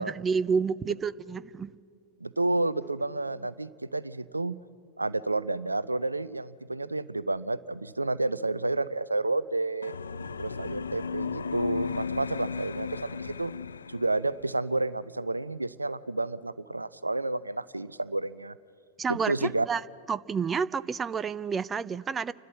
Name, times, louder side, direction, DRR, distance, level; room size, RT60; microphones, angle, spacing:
voice 1, 0.0-1.7 19.0-19.8 20.1-22.3, right 5 dB, 20° right, 17 dB, 0.4 m, -29 dB
voice 2, 2.2-4.6 5.0-9.9 10.4-13.5 13.9-18.5 19.1-19.7, right 2 dB, 85° right, 18 dB, 0.5 m, -30 dB
sound 1, 9.8-14.5, left 5 dB, 75° left, 0.4 m, -35 dB
30.0 x 12.5 x 7.5 m, 2.3 s
figure-of-eight pair, 90°, 0 cm